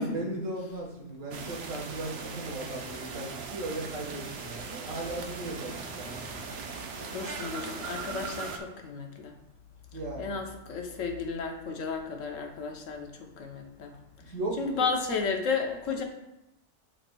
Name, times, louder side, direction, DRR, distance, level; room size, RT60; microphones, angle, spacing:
voice 1, 0.0-6.6 9.9-10.3 14.3-14.9, right 2 dB, 75° right, -1 dB, 1.8 m, -37 dB
sound 1, 1.3-8.6, right 4 dB, 60° right, 0.9 m, -39 dB
voice 2, 7.0-9.4 10.2-14.0 14.6-16.0, left 5 dB, 75° left, 3 dB, 1.2 m, -33 dB
11.5 x 4.2 x 2.3 m, 0.90 s
omnidirectional pair, 1.3 m